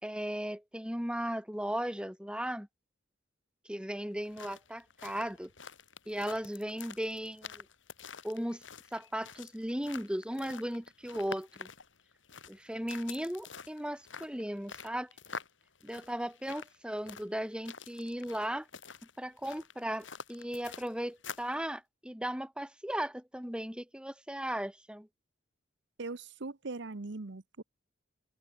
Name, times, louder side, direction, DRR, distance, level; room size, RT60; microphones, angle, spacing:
voice 1, 0.0-2.7 3.6-5.5 6.1-7.6 8.2-8.6 8.9-11.7 12.5-15.1 15.8-18.7 19.2-25.1, equal, 5° right, 3.4 m, -36 dB
sound 1, 4.1-21.6, left 6 dB, 75° left, 4.6 m, -48 dB
voice 2, 26.0-27.6, right 3 dB, 65° right, 1.0 m, -40 dB
open air
head